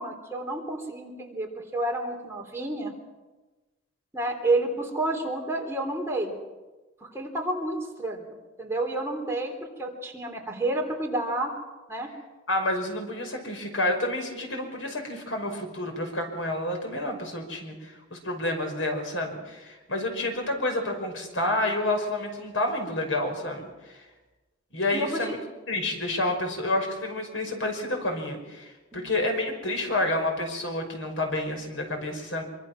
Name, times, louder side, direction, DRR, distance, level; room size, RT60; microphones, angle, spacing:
voice 1, 0.0-2.9 4.1-6.3 7.1-11.5 11.9-12.1 24.9-25.2 28.9-29.1, right 2 dB, 15° right, 0 dB, 3.5 m, -30 dB
voice 2, 12.5-24.0 24.7-25.4 25.7-32.4, left 1 dB, 85° left, 4 dB, 5.6 m, -29 dB
26.0 x 24.0 x 6.1 m, 1.2 s
head